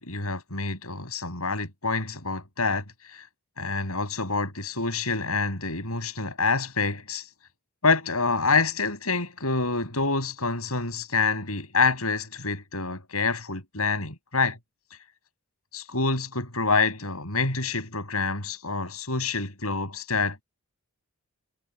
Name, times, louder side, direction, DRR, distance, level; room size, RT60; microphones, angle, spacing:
voice 1, 0.0-2.8 3.6-7.2 7.8-14.6 15.7-20.4, left 4 dB, 80° left, 7.8 m, -27 dB
head